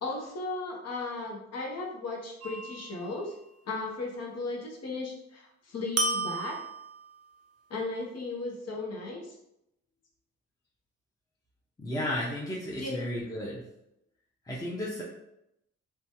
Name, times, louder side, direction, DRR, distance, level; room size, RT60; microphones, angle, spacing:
voice 1, 0.0-3.3 3.7-6.6 7.7-9.3 12.8-13.0, left 3 dB, 50° left, 0 dB, 0.9 m, -36 dB
sound 1, 2.4-3.1 6.0-7.4, right 3 dB, 50° right, 0.5 m, -33 dB
voice 2, 11.8-13.6 14.4-15.0, left 1 dB, 10° left, -5 dB, 0.7 m, -33 dB
3.1 x 2.3 x 2.7 m, 0.81 s
supercardioid pair, 60°, 32 cm